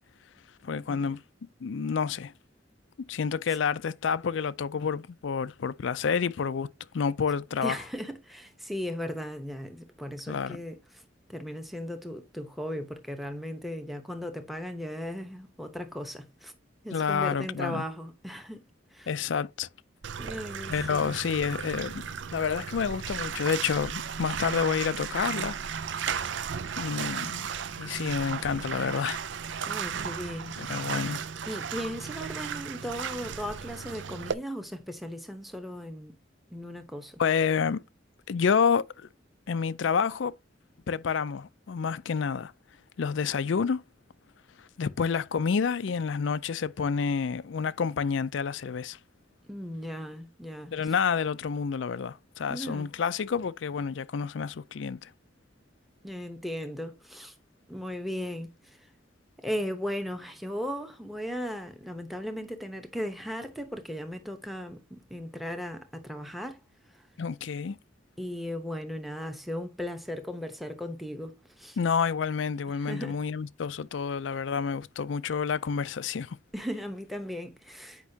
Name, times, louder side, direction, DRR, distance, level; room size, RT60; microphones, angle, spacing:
voice 1, 0.6-1.2 1.6-2.3 3.1-6.7 6.9-7.8 10.3-10.6 16.9-17.8 19.1-19.7 20.7-22.0 22.3-25.6 26.8-27.5 27.8-29.2 30.6-31.2 37.2-37.8 38.3-39.1 39.5-40.3 40.9-42.5 43.0-43.8 44.8-49.0 50.7-55.1 67.2-67.8 71.8-76.4, left 6 dB, 75° left, 0.4 m, -29 dB
voice 2, 7.6-11.0 11.3-16.5 16.8-18.7 18.9-19.1 20.2-21.2 29.7-30.8 31.5-36.1 36.5-37.2 49.5-50.9 52.5-52.9 56.0-57.3 57.7-58.8 59.4-66.6 66.9-67.0 68.2-71.8 72.8-73.2 76.5-78.1, equal, ahead, 0.9 m, -37 dB
Bathtub (filling or washing), 20.0-34.3, right 7 dB, 70° right, 0.5 m, -35 dB
8.2 x 5.4 x 2.8 m
head